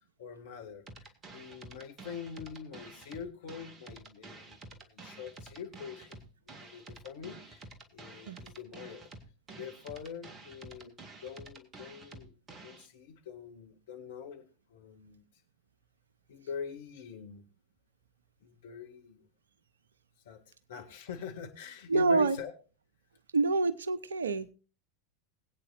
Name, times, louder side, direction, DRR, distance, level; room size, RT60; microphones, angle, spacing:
voice 1, 0.2-6.2 6.6-7.6 7.9-9.1 9.5-10.9 11.2-15.2 16.3-17.4 18.4-19.3 20.3-20.4 20.7-22.5, left 7 dB, 60° left, 5 dB, 2.0 m, -44 dB
sound 1, 0.9-12.9, right 3 dB, 25° right, 1.9 m, -50 dB
voice 2, 21.9-22.4 23.3-24.5, right 3 dB, 75° right, 16 dB, 0.8 m, -27 dB
21.0 x 8.8 x 2.5 m, 0.33 s
figure-of-eight pair, 85°, 0 cm